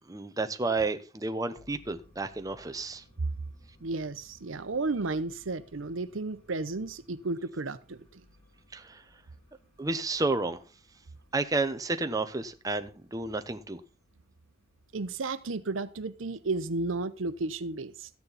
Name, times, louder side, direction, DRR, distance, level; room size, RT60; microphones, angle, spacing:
voice 1, 0.1-3.0 8.7-9.0 9.8-10.6 11.3-13.8, right 3 dB, 20° right, 0.8 m, -31 dB
sound 1, 1.6-16.9, left 1 dB, 30° left, 3.7 m, -62 dB
voice 2, 3.8-8.2 14.9-18.1, right 3 dB, 75° right, 0.8 m, -33 dB
14.0 x 9.5 x 4.1 m
head